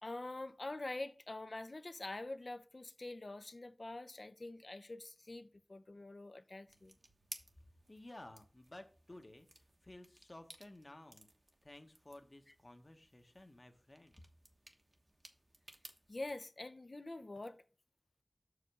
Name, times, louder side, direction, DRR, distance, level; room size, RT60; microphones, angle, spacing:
voice 1, 0.0-6.9 16.1-17.6, left 2 dB, 65° left, 0.6 m, -45 dB
sound 1, 6.7-16.4, right 1 dB, 50° right, 1.1 m, -59 dB
voice 2, 7.9-9.5 9.8-11.3 11.6-14.1, left 1 dB, 50° left, 1.0 m, -55 dB
6.5 x 5.0 x 4.8 m
wide cardioid pair, 50°, 0 cm